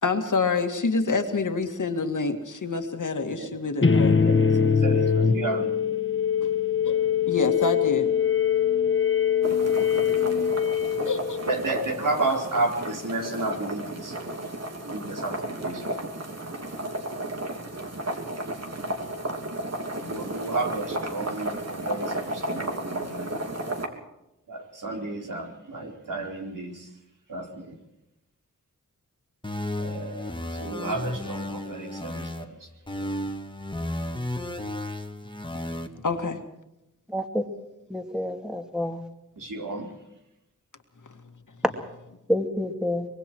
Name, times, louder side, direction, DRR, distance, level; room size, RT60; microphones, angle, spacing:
voice 1, 0.0-4.2 6.8-7.0 7.3-8.1 10.1-10.3 11.1-11.4 36.0-36.4, left 4 dB, 70° left, 2.2 m, -27 dB
sound 1, 3.8-11.7, left 7 dB, 40° left, 1.5 m, -23 dB
voice 2, 4.8-5.7 10.3-10.5 11.4-14.3 14.8-15.7 20.0-23.4 24.5-26.9 27.3-27.8 29.8-32.7 33.0-33.1 39.4-39.9, right 2 dB, 75° right, 4.4 m, -32 dB
sound 2, 9.4-23.9, right 1 dB, 55° right, 3.3 m, -33 dB
sound 3, 29.4-32.4 32.9-35.9, left 1 dB, 15° left, 1.9 m, -33 dB
voice 3, 37.1-37.4 37.9-39.0 41.6-41.7 42.3-43.1, left 1 dB, ahead, 2.4 m, -27 dB
24.5 x 22.5 x 4.7 m
wide cardioid pair, 90°, 32 cm